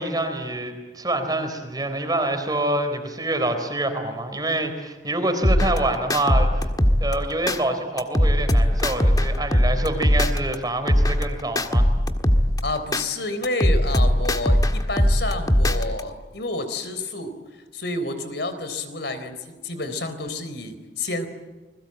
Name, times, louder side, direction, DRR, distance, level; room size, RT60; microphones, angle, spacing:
voice 1, 0.0-6.7 7.0-11.9, right 1 dB, 20° right, 7 dB, 3.7 m, -26 dB
sound 1, 5.4-7.6 8.0-10.6 10.9-13.0 13.4-16.0, equal, 20° left, 1.6 m, -20 dB
voice 2, 12.6-17.4 17.7-21.3, left 2 dB, 65° left, 10 dB, 4.0 m, -29 dB
30.0 x 21.5 x 9.0 m, 1.2 s
head